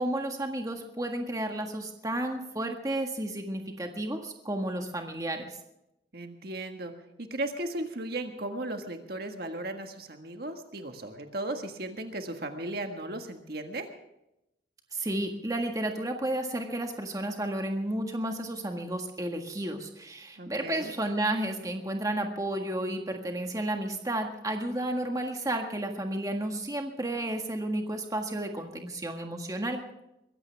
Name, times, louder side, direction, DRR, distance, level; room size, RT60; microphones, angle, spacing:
voice 1, 0.0-5.5 14.9-29.8, right 1 dB, 20° right, 3 dB, 1.6 m, -32 dB
voice 2, 6.1-6.9 7.2-13.9 20.4-20.9, right 1 dB, 55° right, 5 dB, 1.6 m, -36 dB
22.5 x 16.0 x 3.5 m, 0.85 s
head